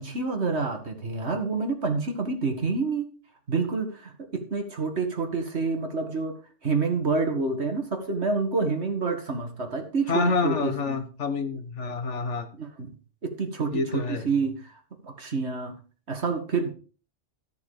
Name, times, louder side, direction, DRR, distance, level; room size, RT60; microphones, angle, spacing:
voice 1, 0.0-3.1 3.5-6.4 6.6-11.0 12.6-12.9 13.2-14.7 15.0-15.8 16.1-16.7, right 4 dB, 65° right, 5 dB, 2.3 m, -28 dB
voice 2, 10.1-12.5 13.7-14.3, left 4 dB, 75° left, 8 dB, 1.6 m, -27 dB
14.0 x 6.7 x 5.0 m, 0.38 s
omnidirectional pair, 1.2 m